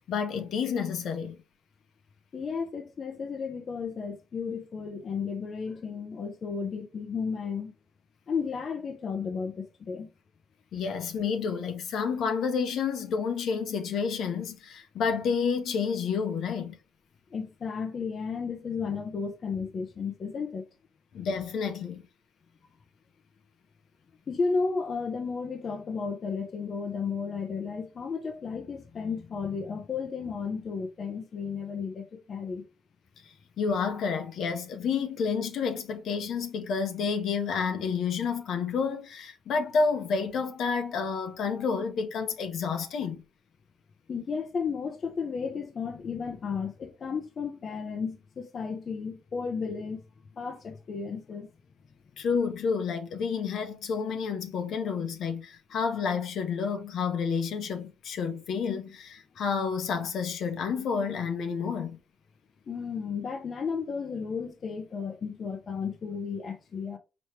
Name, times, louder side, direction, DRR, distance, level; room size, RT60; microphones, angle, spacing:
voice 1, 0.0-1.4 10.7-16.8 21.1-22.1 33.2-43.2 52.2-62.0, left 5 dB, 70° left, 1.0 m, -30 dB
voice 2, 2.3-7.7 8.3-10.1 17.3-20.6 24.3-32.7 44.1-50.0 50.3-51.5 62.7-67.0, left 5 dB, 50° left, 0.7 m, -33 dB
4.4 x 3.2 x 3.2 m
cardioid pair, 90°, 0 cm